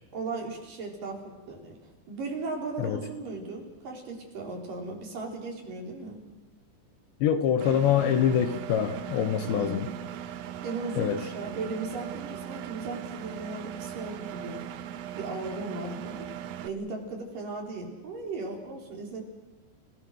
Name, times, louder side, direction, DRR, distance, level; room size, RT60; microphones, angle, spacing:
voice 1, 0.1-1.8 2.1-6.2 9.4-9.8 10.6-14.6 15.2-16.3 16.6-19.2, right 3 dB, 50° right, 0 dB, 5.0 m, -37 dB
voice 2, 7.2-9.9 11.0-11.2, left 9 dB, 75° left, 9 dB, 3.2 m, -25 dB
Engine, 7.6-16.7, right 10 dB, 80° right, 2.1 m, -39 dB
29.5 x 18.0 x 6.4 m, 1.2 s
omnidirectional pair, 5.4 m